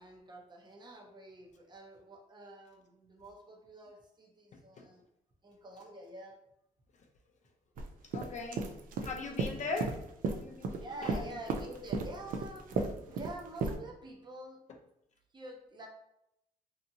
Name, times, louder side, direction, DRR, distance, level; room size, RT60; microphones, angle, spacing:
voice 1, 0.0-5.0 5.4-6.4 10.7-14.6 15.3-15.9, right 2 dB, 30° right, 0 dB, 0.7 m, -48 dB
sound 1, 7.8-7.9 8.1-10.8 11.1-13.8, right 4 dB, 65° right, 0.4 m, -34 dB
voice 2, 8.1-8.7 9.0-9.9 10.3-11.2, left 3 dB, 50° left, 2 dB, 0.5 m, -39 dB
2.7 x 2.5 x 2.7 m, 0.79 s
cardioid pair, 90°, 15 cm